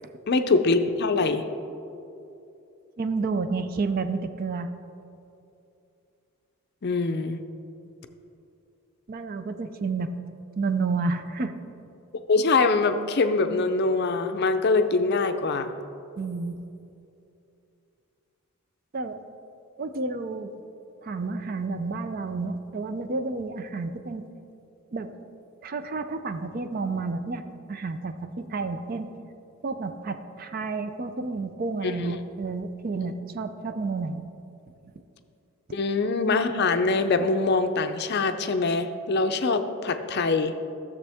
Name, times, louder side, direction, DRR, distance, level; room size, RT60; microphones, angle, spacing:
voice 1, 0.3-1.4 6.8-7.4 12.3-15.7 31.8-32.1 33.0-33.1 35.7-40.5, left 3 dB, 50° left, 8 dB, 0.5 m, -23 dB
voice 2, 3.0-4.7 9.1-10.1 10.6-11.5 16.2-16.6 18.9-19.2 19.8-20.5 21.0-24.2 24.9-25.1 25.6-27.4 27.7-29.1 29.6-34.2, right 3 dB, 40° right, 9 dB, 0.4 m, -30 dB
14.0 x 7.1 x 3.5 m, 2.7 s
head